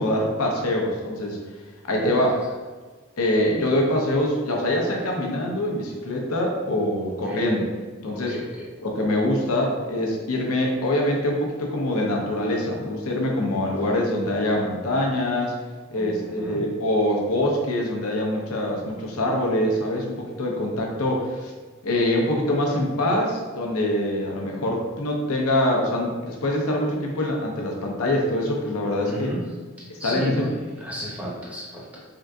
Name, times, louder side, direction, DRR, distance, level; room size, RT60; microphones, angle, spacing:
voice 1, 0.0-1.4 1.9-2.3 3.2-7.7 8.0-8.3 8.8-15.5 15.9-21.5 21.8-29.3 30.0-30.4, left 1 dB, 80° left, 0 dB, 0.7 m, -24 dB
voice 2, 1.9-2.4 7.3-7.5 8.1-8.7 15.9-16.6 29.1-29.4 30.0-32.0, left 1 dB, 5° right, -5 dB, 0.6 m, -33 dB
3.7 x 3.7 x 2.3 m, 1.4 s
head